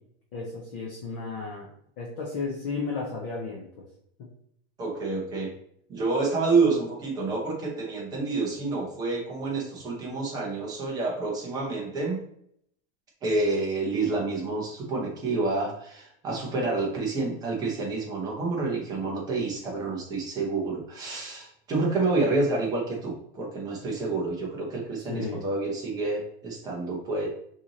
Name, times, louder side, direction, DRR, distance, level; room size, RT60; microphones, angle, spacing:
voice 1, 0.3-1.7 2.0-3.6 25.1-25.4, left 4 dB, 20° left, -3 dB, 0.3 m, -33 dB
voice 2, 4.8-5.5 5.9-12.2 13.2-27.3, right 3 dB, 15° right, -2 dB, 0.7 m, -28 dB
5.7 x 2.7 x 2.8 m, 0.70 s
supercardioid pair, 175°, 30 cm